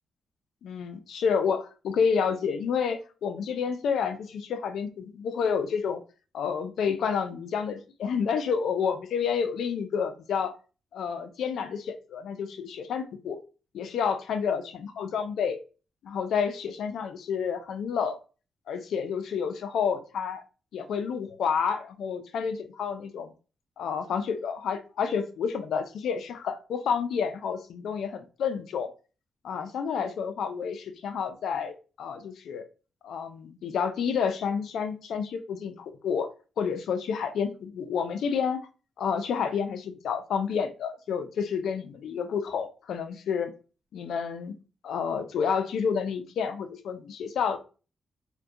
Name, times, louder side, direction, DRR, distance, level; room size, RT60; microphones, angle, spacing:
voice 1, 0.6-6.0 6.3-10.5 10.9-13.4 13.7-15.6 16.0-18.2 18.7-20.4 20.7-23.3 23.8-28.9 29.4-32.6 33.0-36.3 36.6-38.7 39.0-43.5 43.9-44.5 44.8-47.6, left 6 dB, 80° left, 8 dB, 0.4 m, -29 dB
2.6 x 2.1 x 2.3 m, 0.34 s
cardioid pair, 135°, 0 cm